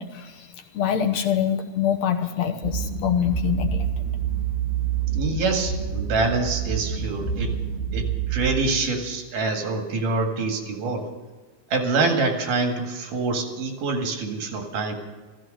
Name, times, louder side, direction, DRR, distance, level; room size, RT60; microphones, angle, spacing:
voice 1, 0.0-4.1, left 9 dB, 65° left, 6 dB, 2.0 m, -25 dB
sound 1, 2.6-8.5, right 7 dB, 20° right, 2.7 m, -27 dB
voice 2, 5.1-7.6 7.9-11.1 11.7-15.0, right 3 dB, 85° right, 3 dB, 3.7 m, -26 dB
15.0 x 14.5 x 6.3 m, 1.3 s
omnidirectional pair, 3.6 m